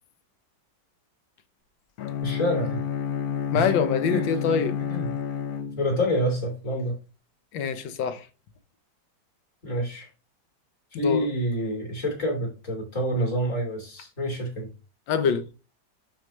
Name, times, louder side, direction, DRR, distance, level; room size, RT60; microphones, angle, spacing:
Bowed string instrument, 2.0-6.2, left 8 dB, 60° left, 1.3 m, -30 dB
voice 1, 2.2-2.8 3.5-3.7 4.1-4.2 4.8-5.1 5.8-7.0 9.6-10.1 10.9-14.7, equal, 40° left, 3.5 m, -27 dB
voice 2, 3.5-4.8 7.5-8.3 10.9-11.3 15.1-15.5, left 6 dB, 75° left, 1.6 m, -24 dB
11.5 x 4.6 x 3.1 m
omnidirectional pair, 2.1 m